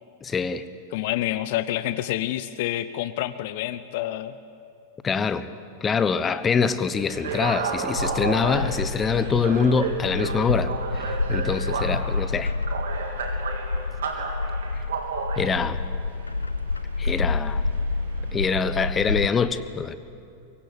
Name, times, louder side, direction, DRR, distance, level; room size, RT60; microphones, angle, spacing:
voice 1, 0.2-0.6 5.0-5.5 5.8-12.5 15.4-15.8 17.0-17.6 18.3-20.0, left 5 dB, 20° left, 14 dB, 1.1 m, -24 dB
voice 2, 0.9-4.4, left 14 dB, 50° left, 13 dB, 0.8 m, -28 dB
sound 1, 7.0-18.8, right 5 dB, 60° right, 3.4 m, -33 dB
Bird, 8.0-19.3, left 3 dB, 80° left, 0.6 m, -29 dB
23.5 x 23.5 x 9.9 m, 2.5 s
figure-of-eight pair, 90°, 0 cm